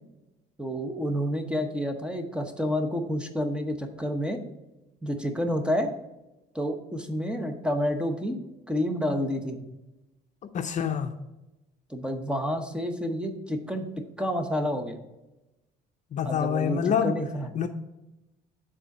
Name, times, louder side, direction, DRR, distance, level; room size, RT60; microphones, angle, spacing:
voice 1, 0.6-4.4 5.0-5.9 6.5-8.4 8.7-9.6 11.9-13.9 14.2-15.0 16.2-17.5, equal, 5° right, 0.9 m, -29 dB
voice 2, 10.5-11.1 16.1-17.2 17.6-17.7, left 8 dB, 45° left, 0.5 m, -26 dB
6.8 x 3.8 x 6.0 m
cardioid pair, 110°, 17 cm